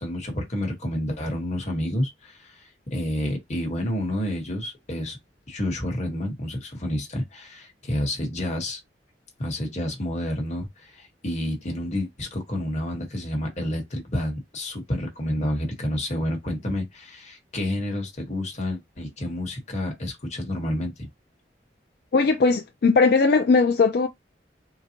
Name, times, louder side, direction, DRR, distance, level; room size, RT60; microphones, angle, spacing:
voice 1, 0.0-5.2 5.5-8.8 9.4-21.1, left 1 dB, 40° left, 1.2 m, -29 dB
voice 2, 22.1-24.1, left 4 dB, 65° left, 0.4 m, -19 dB
3.9 x 2.1 x 2.8 m
head